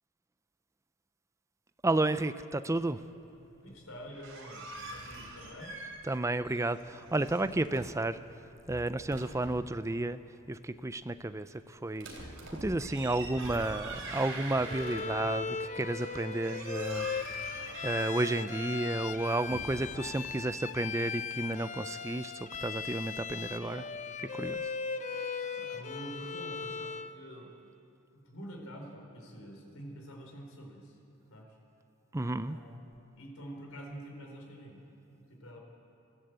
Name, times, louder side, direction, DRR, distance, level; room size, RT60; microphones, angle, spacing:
voice 1, 1.8-3.0 6.1-8.2 8.7-10.2 10.5-12.3 12.6-17.1 17.7-23.9 24.3-24.6 25.1-25.2 32.1-32.6, right 2 dB, 15° right, 12 dB, 0.5 m, -32 dB
voice 2, 3.6-5.8 25.5-27.5 28.1-31.0 31.3-31.6 32.5-32.8 33.2-34.8 35.1-35.6, equal, 85° left, 1 dB, 4.3 m, -47 dB
sound 1, 4.1-6.2 6.5-8.0 8.5-9.7 11.9-15.4 15.8-20.3, right 2 dB, 65° right, 3.6 m, -44 dB
Bowed string instrument, 14.6-27.2, left 5 dB, 35° left, 0.7 m, -38 dB
23.5 x 14.0 x 8.1 m, 2.9 s
head